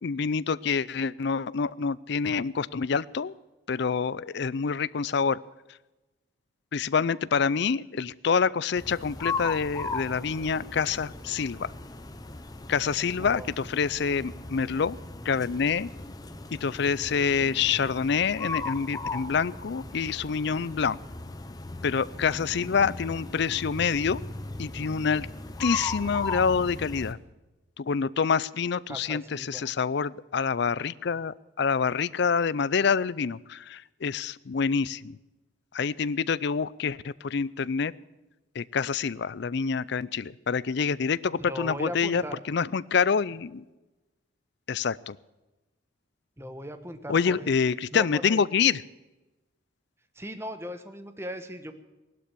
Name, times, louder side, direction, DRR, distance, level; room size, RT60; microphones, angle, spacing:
voice 1, 0.0-3.3 3.7-5.4 6.7-11.7 12.7-15.0 15.2-15.9 16.6-21.0 21.8-24.2 24.6-25.3 25.6-27.2 27.8-35.2 35.7-37.9 38.6-43.6 44.7-45.2 47.1-48.8, left 6 dB, 60° left, 19 dB, 0.5 m, -27 dB
sound 1, 8.8-27.1, left 3 dB, 20° left, 0.9 m, -37 dB
voice 2, 13.2-13.5 28.9-29.7 41.4-42.4 46.4-47.5 47.9-48.4 50.2-51.7, equal, 15° right, 9 dB, 1.2 m, -38 dB
17.5 x 12.0 x 6.8 m, 1.1 s
head